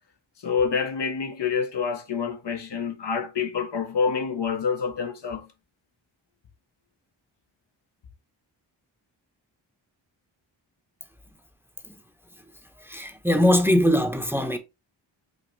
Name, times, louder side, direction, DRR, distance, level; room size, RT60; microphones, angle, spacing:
voice 1, 0.4-5.5, left 6 dB, 60° left, 1.0 m, -27 dB
voice 2, 12.9-14.6, left 1 dB, 5° right, 0.9 m, -21 dB
5.3 x 2.5 x 3.1 m
cardioid pair, 40°, 48 cm